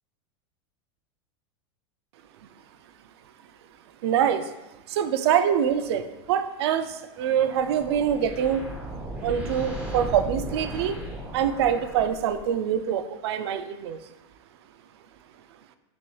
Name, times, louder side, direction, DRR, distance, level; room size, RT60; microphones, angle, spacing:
voice 1, 4.0-4.5 4.9-8.6 9.2-11.0 11.3-14.0, right 9 dB, 65° right, 10 dB, 0.4 m, -25 dB
sound 1, 7.1-12.6, right 1 dB, 10° right, 0.6 m, -36 dB
6.1 x 3.0 x 2.3 m, 0.98 s
supercardioid pair, 155°, 15 cm